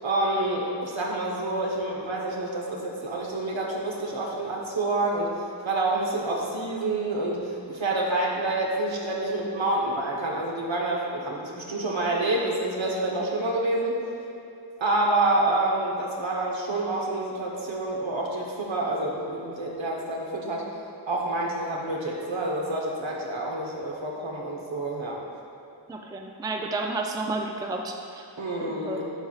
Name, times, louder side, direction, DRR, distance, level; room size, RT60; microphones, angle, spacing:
voice 1, 0.0-5.3 5.6-14.0 14.8-20.6 21.1-25.2 28.4-29.1, right 2 dB, 75° right, -2 dB, 1.1 m, -28 dB
voice 2, 25.9-28.2 28.6-29.0, right 2 dB, 10° right, 2 dB, 0.4 m, -31 dB
11.0 x 4.5 x 2.4 m, 2.9 s
wide cardioid pair, 70°, 46 cm